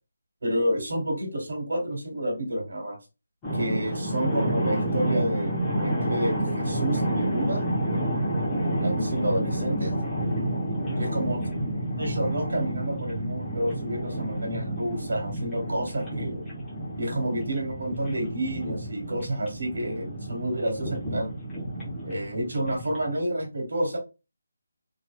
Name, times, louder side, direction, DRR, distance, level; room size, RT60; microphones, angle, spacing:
voice 1, 0.4-3.0 3.5-7.6 8.8-10.0 11.0-11.4 12.0-16.4 16.9-21.3 22.0-24.0, right 1 dB, 75° right, 2 dB, 1.6 m, -29 dB
sound 1, 3.4-23.1, right 1 dB, 10° left, 0.8 m, -29 dB
2.9 x 2.9 x 2.2 m, 0.28 s
hypercardioid pair, 180°, 0 cm